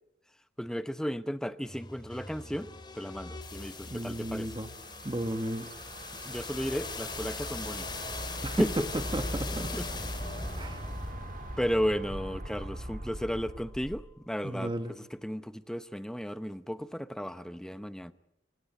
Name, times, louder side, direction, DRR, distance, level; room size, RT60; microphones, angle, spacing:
voice 1, 0.6-4.5 6.3-7.9 8.6-8.7 9.6-9.9 11.6-18.1, equal, 5° left, 0.8 m, -34 dB
sound 1, 1.6-13.5, left 2 dB, 25° left, 3.0 m, -40 dB
voice 2, 3.9-4.7 5.0-5.7 8.4-8.8 9.1-9.7 10.6-10.9 14.4-14.9, right 1 dB, 25° right, 1.3 m, -33 dB
sound 2, 4.4-14.1, right 2 dB, 50° right, 2.0 m, -44 dB
26.5 x 17.5 x 8.9 m
head